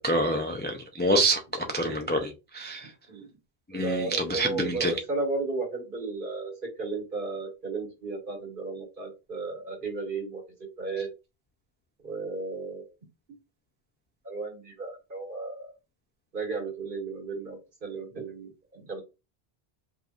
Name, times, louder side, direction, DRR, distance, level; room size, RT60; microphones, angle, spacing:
voice 1, 0.0-2.9 3.7-4.9, right 1 dB, 15° left, 0.4 m, -27 dB
voice 2, 3.7-6.5 6.8-11.1 12.0-12.9 14.2-15.7 16.3-19.0, right 3 dB, 55° right, 1.7 m, -34 dB
5.2 x 2.8 x 2.4 m
omnidirectional pair, 1.1 m